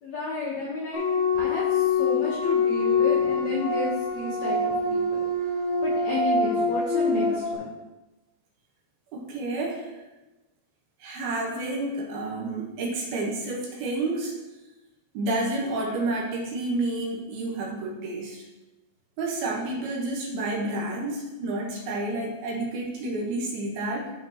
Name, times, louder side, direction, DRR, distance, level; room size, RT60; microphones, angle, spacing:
voice 1, 0.0-1.0 1.4-5.2 5.8-7.7, left 1 dB, 80° left, -4 dB, 1.5 m, -31 dB
sound 1, 0.9-7.5, left 4 dB, 45° left, 3.8 m, -25 dB
voice 2, 9.1-9.9 11.0-14.4 15.1-18.4 19.2-24.1, right 2 dB, 70° right, -2 dB, 2.9 m, -30 dB
14.0 x 5.5 x 3.0 m, 1.0 s
omnidirectional pair, 5.1 m